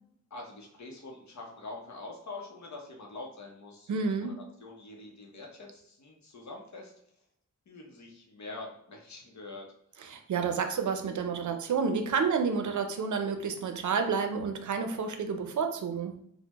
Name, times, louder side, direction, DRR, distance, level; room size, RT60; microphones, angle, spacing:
voice 1, 0.3-4.3 4.6-6.9 7.7-9.7, left 2 dB, 65° left, 0 dB, 0.7 m, -45 dB
voice 2, 3.9-4.4 10.0-16.2, right 5 dB, 75° right, 6 dB, 0.5 m, -30 dB
3.3 x 2.1 x 2.9 m, 0.72 s
wide cardioid pair, 80°, 30 cm